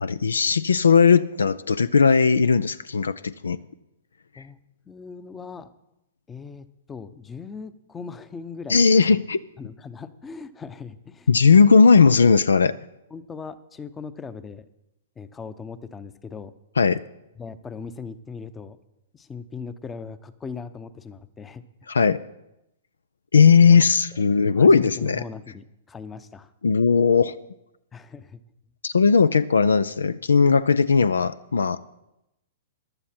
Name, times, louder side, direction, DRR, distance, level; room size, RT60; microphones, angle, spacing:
voice 1, 0.0-3.6 4.4-4.5 8.7-9.4 11.3-12.8 16.8-17.0 21.9-22.2 23.3-25.2 26.6-27.3 28.8-31.8, left 5 dB, 80° left, 17 dB, 0.4 m, -17 dB
voice 2, 4.9-5.7 6.3-8.8 9.6-11.3 13.1-14.6 15.2-16.5 17.4-18.8 19.1-21.6 23.6-23.8 24.5-26.5 27.9-28.4, left 5 dB, 15° left, 14 dB, 0.8 m, -39 dB
15.0 x 11.5 x 4.4 m, 0.89 s
hypercardioid pair, 115°, 0 cm